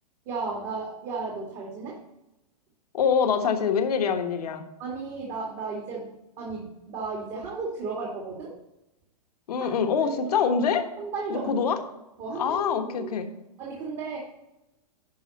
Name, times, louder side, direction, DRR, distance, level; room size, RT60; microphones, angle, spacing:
voice 1, 0.3-2.0 4.8-8.5 9.6-9.7 10.0-10.4 10.8-11.6 12.2-13.1 13.6-14.2, right 4 dB, 35° right, -2 dB, 2.3 m, -34 dB
voice 2, 2.9-4.6 9.5-10.8 11.3-11.8 12.4-13.3, left 6 dB, 70° left, 6 dB, 1.3 m, -25 dB
12.0 x 4.8 x 4.2 m, 0.93 s
hypercardioid pair, 125°, 21 cm